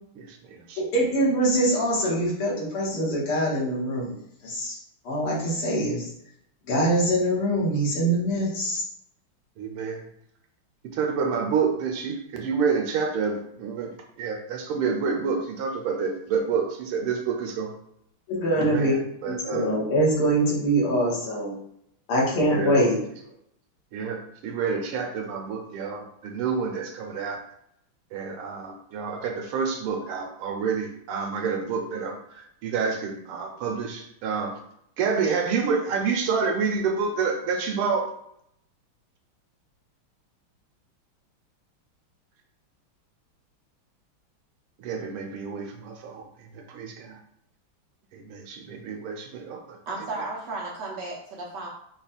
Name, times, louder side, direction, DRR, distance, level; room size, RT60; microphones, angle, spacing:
voice 1, 0.2-0.8 9.6-10.1 10.8-17.7 18.5-19.7 22.5-22.8 23.9-27.4 28.1-34.6 35.0-38.1 44.8-47.2 48.1-49.8 50.2-50.3, right 5 dB, 85° right, 3 dB, 1.7 m, -28 dB
voice 2, 0.9-4.8 5.1-6.1 6.7-8.8 18.3-18.9 19.2-21.6 22.1-23.0, right 1 dB, 80° left, -4 dB, 2.3 m, -24 dB
voice 3, 49.9-51.7, right 3 dB, 60° right, -3 dB, 1.3 m, -34 dB
5.1 x 2.3 x 4.2 m, 0.74 s
omnidirectional pair, 2.4 m